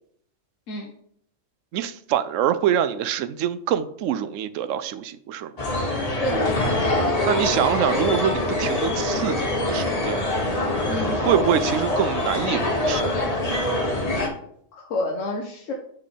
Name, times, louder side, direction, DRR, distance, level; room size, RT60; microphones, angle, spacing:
voice 1, 1.7-5.5 7.3-10.3 11.1-13.1, right 10 dB, 80° right, 0.9 m, -25 dB
sound 1, 5.6-14.3, left 1 dB, 30° left, 1.1 m, -24 dB
voice 2, 6.1-6.5 10.8-11.2 14.7-15.7, left 2 dB, 80° left, 1.3 m, -29 dB
7.4 x 3.7 x 5.1 m
omnidirectional pair, 1.3 m